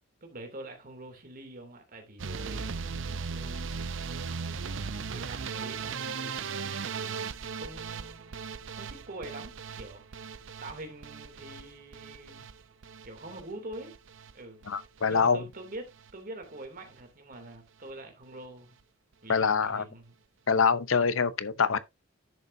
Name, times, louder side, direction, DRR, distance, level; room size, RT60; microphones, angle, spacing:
voice 1, 0.2-4.8 5.1-7.2 7.5-8.4 8.7-12.4 13.0-13.9 14.3-14.6 15.1-18.8 19.2-20.2, right 1 dB, 45° right, 2.9 m, -45 dB
sound 1, 2.2-14.3 14.6-15.2 15.5-16.1 16.4-16.7 17.0-17.1 17.3-17.4, right 5 dB, 70° right, 0.7 m, -38 dB
voice 2, 14.7-15.4 19.3-19.8 20.5-21.8, left 5 dB, 85° left, 0.8 m, -25 dB
10.5 x 6.8 x 2.7 m
head